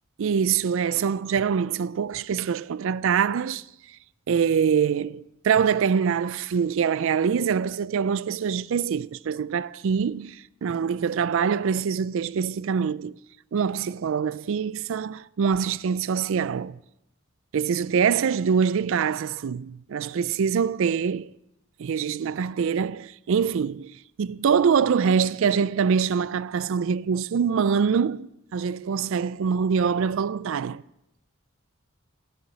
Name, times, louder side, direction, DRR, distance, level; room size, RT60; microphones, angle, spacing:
voice 1, 0.2-4.0 4.3-13.2 13.5-16.8 17.5-21.3 21.8-30.8, right 6 dB, 70° right, 0.4 m, -24 dB
14.0 x 5.7 x 9.2 m
head